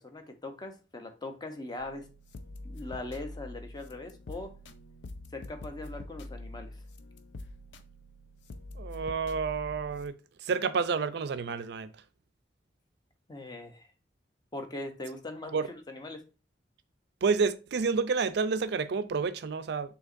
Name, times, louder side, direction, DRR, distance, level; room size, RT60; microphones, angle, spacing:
voice 1, 0.0-2.1 2.6-4.6 5.3-6.8 13.3-13.9 14.5-16.2, left 2 dB, 25° left, 0.7 m, -41 dB
sound 1, 1.8-10.1, left 2 dB, 85° left, 0.5 m, -45 dB
voice 2, 8.8-10.2 10.4-11.9 15.5-15.7 17.2-20.0, right 5 dB, 65° right, 0.4 m, -29 dB
6.2 x 2.9 x 2.5 m
head